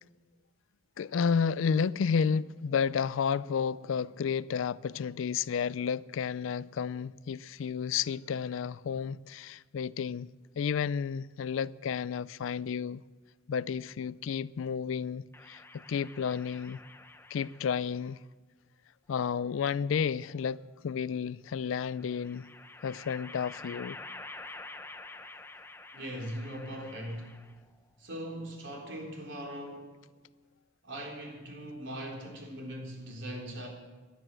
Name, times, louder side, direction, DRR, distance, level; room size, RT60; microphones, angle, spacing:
voice 1, 1.0-13.0 13.5-16.8 17.3-18.2 19.1-22.5 22.8-24.0, left 6 dB, 80° left, 0.4 m, -31 dB
sound 1, 15.3-18.0 19.1-20.1 21.7-27.7, left 2 dB, 10° left, 0.6 m, -48 dB
voice 2, 25.9-27.4 28.0-30.0 30.8-33.7, equal, 65° right, 3.8 m, -40 dB
15.5 x 11.5 x 7.6 m
head